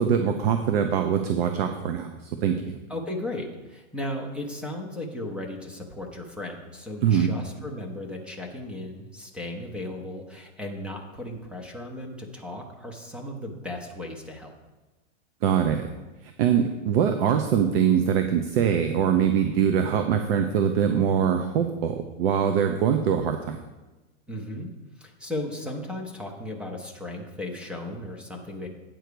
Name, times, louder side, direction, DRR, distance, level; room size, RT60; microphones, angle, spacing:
voice 1, 0.0-2.8 7.0-7.3 15.4-15.9 16.2-23.6, right 8 dB, 50° right, 7 dB, 0.7 m, -23 dB
voice 2, 2.9-14.5 24.3-24.7 25.0-28.7, left 1 dB, 5° right, 2 dB, 0.5 m, -36 dB
9.0 x 4.7 x 6.7 m, 1.1 s
supercardioid pair, 150°, 38 cm